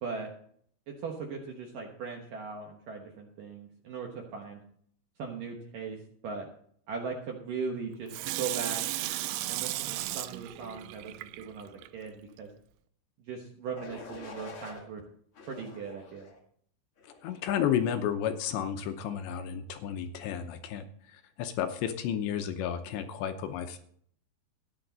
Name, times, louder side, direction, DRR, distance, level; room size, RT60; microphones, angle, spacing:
voice 1, 0.0-0.3 0.9-4.6 5.2-6.0 6.2-6.5 6.9-8.8 9.5-12.5 13.3-15.0 15.5-16.3, right 5 dB, 65° right, 2 dB, 2.2 m, -39 dB
Water tap faucet / Sink (filling or washing), 8.1-11.9 12.4-12.5, right 16 dB, 85° right, 2.4 m, -35 dB
sound 1, 13.7-14.8 15.3-16.4 17.0-17.3, left 3 dB, 50° left, 1.7 m, -46 dB
voice 2, 17.2-20.8 21.1-23.8, left 9 dB, 75° left, 7 dB, 2.9 m, -32 dB
14.0 x 10.5 x 4.0 m, 0.62 s
omnidirectional pair, 5.5 m